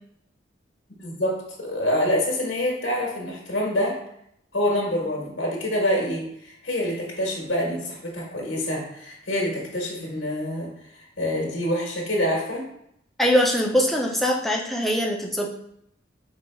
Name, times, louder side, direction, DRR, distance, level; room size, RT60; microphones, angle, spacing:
voice 1, 1.0-4.0 4.5-10.7 11.2-12.6, left 1 dB, 65° left, -3 dB, 1.4 m, -26 dB
voice 2, 13.2-15.5, equal, ahead, -1 dB, 0.5 m, -22 dB
5.0 x 3.9 x 2.3 m, 0.73 s
head